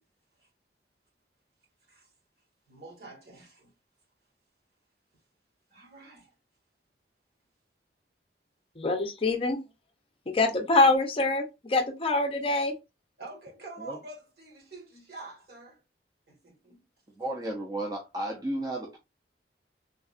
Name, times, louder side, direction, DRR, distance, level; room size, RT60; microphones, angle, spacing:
voice 1, 2.7-3.5 5.7-6.2 13.2-15.7 16.4-16.8, right 2 dB, 65° right, 1.5 m, -46 dB
voice 2, 8.8-9.6 10.3-12.7, left 2 dB, 30° left, 0.5 m, -25 dB
voice 3, 17.2-19.0, right 1 dB, 20° right, 0.5 m, -33 dB
3.5 x 2.2 x 2.4 m
head